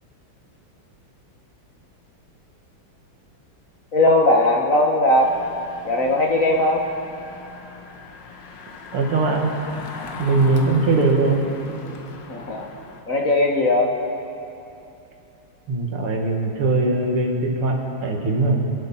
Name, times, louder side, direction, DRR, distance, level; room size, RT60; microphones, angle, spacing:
voice 1, 3.9-5.3 5.8-6.9 12.3-12.7 13.1-14.0, left 1 dB, 45° left, 1 dB, 1.3 m, -18 dB
Engine, 5.2-13.0, left 4 dB, 60° left, 1.6 m, -39 dB
voice 2, 8.9-9.5 10.2-11.5 15.7-18.7, right 3 dB, 80° right, 1 dB, 2.6 m, -20 dB
27.5 x 11.5 x 4.3 m, 2.8 s
omnidirectional pair, 2.4 m